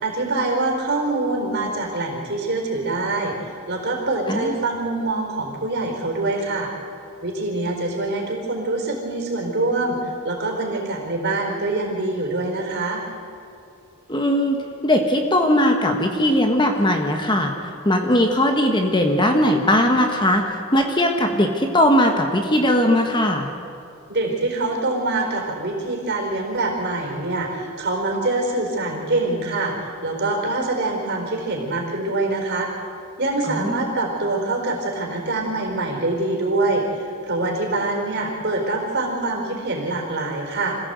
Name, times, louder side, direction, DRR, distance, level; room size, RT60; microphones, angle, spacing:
voice 1, 0.0-6.7 7.2-10.0 10.2-13.0 24.1-32.7 33.2-40.8, right 2 dB, 50° right, 1 dB, 4.3 m, -24 dB
voice 2, 14.1-17.5 17.8-23.5 33.5-33.8, left 1 dB, 20° left, 4 dB, 1.4 m, -19 dB
26.5 x 16.0 x 8.1 m, 2.5 s
head